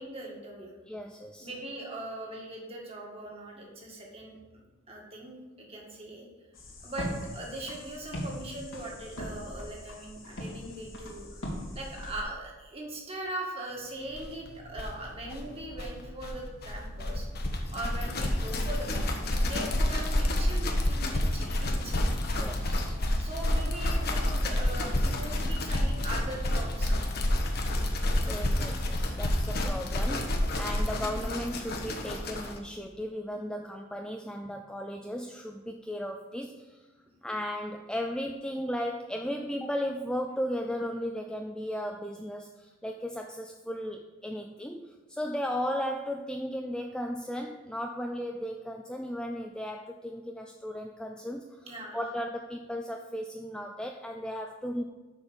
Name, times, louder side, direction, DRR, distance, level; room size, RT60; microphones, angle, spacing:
voice 1, 0.0-0.7 1.4-4.4 4.9-6.3 6.8-11.4 11.7-17.3 17.7-22.1 23.2-26.9 51.6-52.0, right 1 dB, 30° right, -1 dB, 1.8 m, -40 dB
voice 2, 0.9-1.5 22.4-23.0 28.3-36.8 37.2-51.7 51.9-54.8, equal, 5° left, 3 dB, 0.3 m, -35 dB
sound 1, 6.5-12.2, equal, 80° left, 2.3 m, -40 dB
sound 2, 14.2-14.3 14.5-14.6 14.7-32.6, left 1 dB, 50° left, 1.1 m, -29 dB
6.8 x 5.9 x 7.1 m, 1.2 s
head